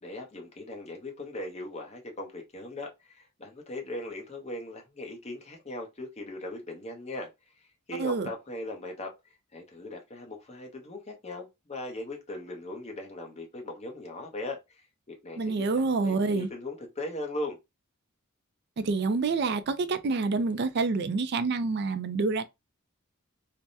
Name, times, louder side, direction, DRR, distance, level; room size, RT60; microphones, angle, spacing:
voice 1, 0.0-7.3 7.6-9.1 9.5-14.8 15.1-17.6, left 1 dB, 30° left, 0.8 m, -39 dB
voice 2, 15.4-16.5 18.8-22.5, right 4 dB, 50° right, 0.4 m, -27 dB
3.4 x 2.1 x 2.6 m
head